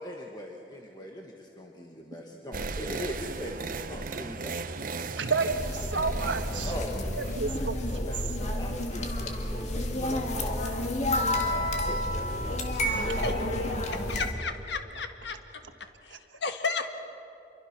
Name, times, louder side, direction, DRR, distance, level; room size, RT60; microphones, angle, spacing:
voice 1, 0.0-3.5 3.9-4.5 6.6-11.6 11.8-12.6 13.1-13.4, left 1 dB, 25° left, 0 dB, 1.5 m, -41 dB
sound 1, 2.5-7.8, right 4 dB, 50° right, 0.8 m, -37 dB
voice 2, 5.2-6.7 7.2-7.8, right 4 dB, 80° right, 6 dB, 1.6 m, -30 dB
sound 2, 5.5-14.3, left 1 dB, 40° left, 2.1 m, -30 dB
voice 3, 13.9-15.4 15.8-16.9, left 4 dB, 65° left, 6 dB, 1.6 m, -33 dB
27.5 x 23.5 x 6.0 m, 2.9 s
head